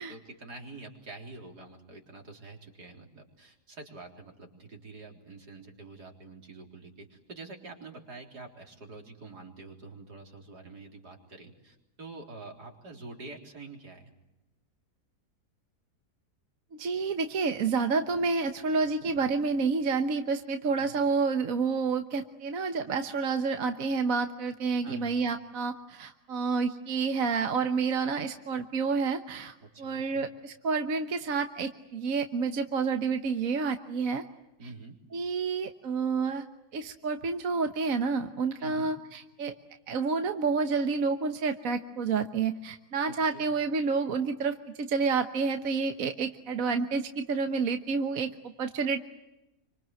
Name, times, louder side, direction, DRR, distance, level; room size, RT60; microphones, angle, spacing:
voice 1, 0.0-14.1 20.8-21.0 24.8-25.3 29.6-30.2 34.6-35.0 38.6-38.9 43.1-43.5, right 3 dB, 80° right, 2 dB, 4.4 m, -47 dB
voice 2, 16.7-34.2 35.1-36.4 36.7-39.5 39.9-49.0, right 4 dB, 60° right, 6 dB, 1.5 m, -29 dB
28.0 x 25.5 x 7.7 m, 0.95 s
omnidirectional pair, 1.7 m